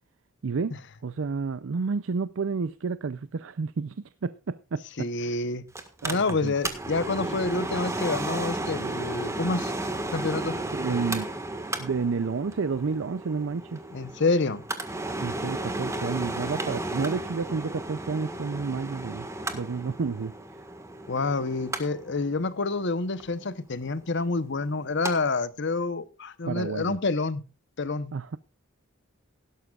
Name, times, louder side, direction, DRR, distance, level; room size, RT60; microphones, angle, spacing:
voice 1, 0.4-0.7 1.0-5.4 6.0-6.5 10.7-11.3 11.8-13.8 15.2-19.3 19.5-20.3 26.5-27.0 28.1-28.4, right 5 dB, 70° right, 0.5 m, -30 dB
voice 2, 5.0-5.6 6.0-9.7 10.1-10.6 13.9-14.6 21.1-27.4 27.8-28.1, left 3 dB, 60° left, 0.9 m, -28 dB
Mechanical fan, 5.7-25.1 25.5-25.6, right 2 dB, 15° right, 1.6 m, -34 dB
17.0 x 12.0 x 2.4 m
head